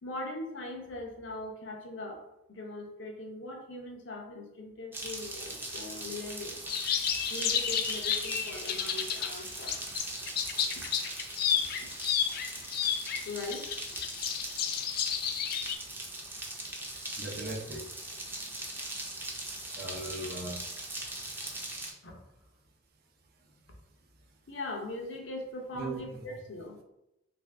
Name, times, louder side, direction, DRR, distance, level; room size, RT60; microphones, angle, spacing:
voice 1, 0.0-2.2 2.5-6.6 7.3-9.8 13.2-13.7 22.0-22.2 24.5-26.8, left 2 dB, 80° left, 1 dB, 0.7 m, -40 dB
sound 1, 4.9-21.9, right 2 dB, 10° right, 0.5 m, -40 dB
sound 2, 6.7-9.3 9.7-15.8, left 8 dB, 55° left, 0.3 m, -31 dB
voice 2, 17.2-17.9 19.8-20.6 25.7-26.2, right 2 dB, 55° right, 2 dB, 0.6 m, -38 dB
3.2 x 2.6 x 3.3 m, 0.88 s
head